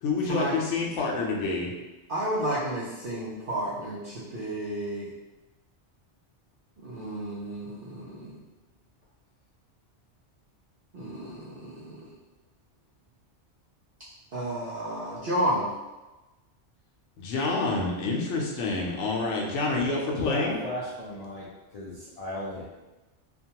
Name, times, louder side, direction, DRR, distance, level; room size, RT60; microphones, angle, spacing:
voice 1, 0.0-1.7 17.2-20.6, left 3 dB, 85° left, -1 dB, 0.9 m, -28 dB
voice 2, 2.1-5.1 6.8-8.3 10.9-12.1 14.3-15.7, right 1 dB, 60° right, -9 dB, 0.7 m, -31 dB
voice 3, 20.1-21.5 21.7-22.6, left 1 dB, 70° left, -7 dB, 0.3 m, -35 dB
2.5 x 2.2 x 2.8 m, 1.1 s
omnidirectional pair, 1.2 m